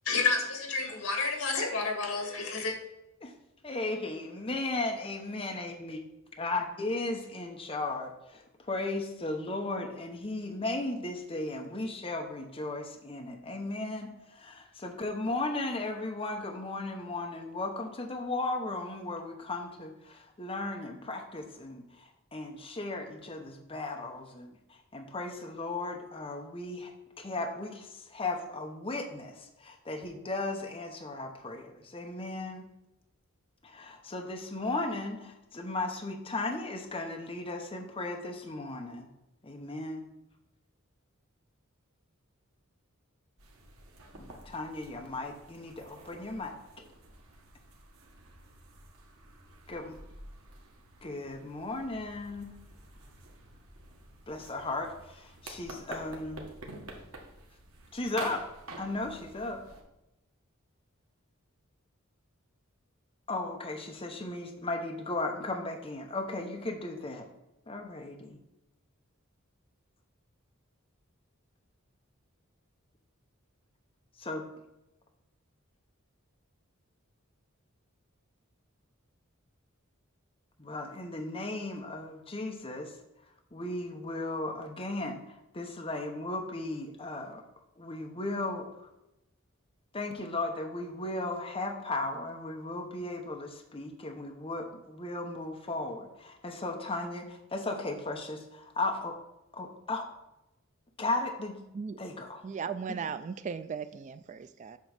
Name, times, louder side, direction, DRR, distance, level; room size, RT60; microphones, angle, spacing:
voice 1, 0.0-2.8, left 4 dB, 75° left, 1.8 m, -30 dB
voice 2, 3.6-6.0 6.4-26.9 27.2-32.7 33.6-39.1 39.4-40.0 44.1-46.6 49.7-50.0 51.0-52.5 54.3-56.4 57.9-58.4 58.8-59.6 63.3-67.3 67.7-68.4 74.2-74.4 80.6-82.9 83.5-87.4 87.8-88.6 89.9-99.2 99.5-100.1 101.0-101.6 102.0-102.4, left 2 dB, 25° left, 0.9 m, -36 dB
sound 1, 43.4-59.8, right 2 dB, 85° right, 1.5 m, -49 dB
voice 3, 102.4-104.8, right 6 dB, 35° right, 0.3 m, -37 dB
8.2 x 3.1 x 6.4 m
head